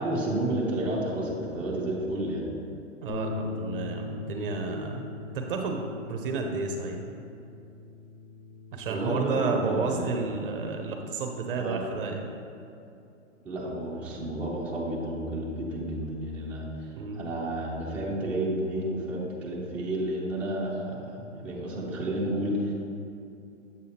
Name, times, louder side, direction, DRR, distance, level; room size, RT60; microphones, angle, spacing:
voice 1, 0.0-2.5 8.9-10.2 11.5-11.8 13.4-16.9 17.1-22.7, right 1 dB, 5° right, -7 dB, 0.7 m, -31 dB
voice 2, 3.0-5.0 5.3-5.8 6.1-7.0 8.7-12.3 16.9-17.2, right 4 dB, 45° right, 3 dB, 0.6 m, -31 dB
sound 1, 3.1-9.3, left 3 dB, 55° left, 0.7 m, -40 dB
7.2 x 6.2 x 2.8 m, 2.7 s
hypercardioid pair, 135°, 38 cm